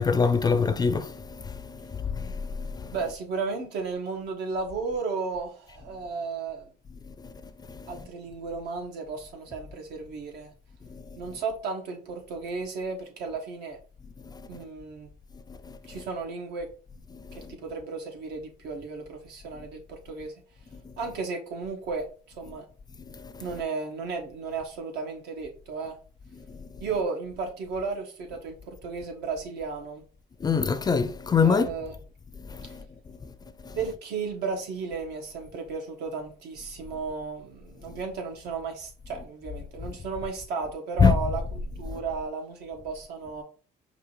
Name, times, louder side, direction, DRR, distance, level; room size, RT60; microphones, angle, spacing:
voice 1, 0.0-2.9 7.1-8.0 10.9-11.0 14.2-14.4 15.5-16.0 17.1-17.5 20.7-20.9 23.0-23.5 26.4-26.8 30.4-31.7 32.4-33.3 33.6-33.8 37.9-38.0 41.0-41.2 41.9-42.0, left 5 dB, 25° left, 0.4 m, -27 dB
voice 2, 2.9-6.7 7.9-10.5 11.2-13.8 14.5-15.1 15.9-16.7 17.5-20.3 21.0-22.7 23.4-26.0 26.8-30.0 31.4-31.9 32.6-32.7 33.7-43.4, right 4 dB, 80° right, 1.5 m, -34 dB
5.1 x 2.8 x 3.1 m
cardioid pair, 110°, 17 cm